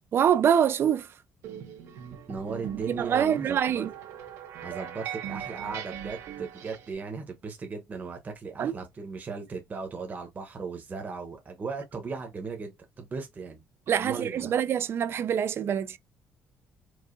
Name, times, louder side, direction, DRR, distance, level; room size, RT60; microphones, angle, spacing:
voice 1, 0.1-1.1 2.7-3.9 8.6-8.7 13.9-16.0, right 8 dB, 50° right, 0.4 m, -25 dB
sound 1, 1.4-6.9, right 9 dB, 80° right, 1.1 m, -40 dB
voice 2, 2.3-3.9 4.6-13.6 14.0-14.5, right 4 dB, 35° right, 0.9 m, -37 dB
4.7 x 2.3 x 2.5 m
cardioid pair, 100°, 5 cm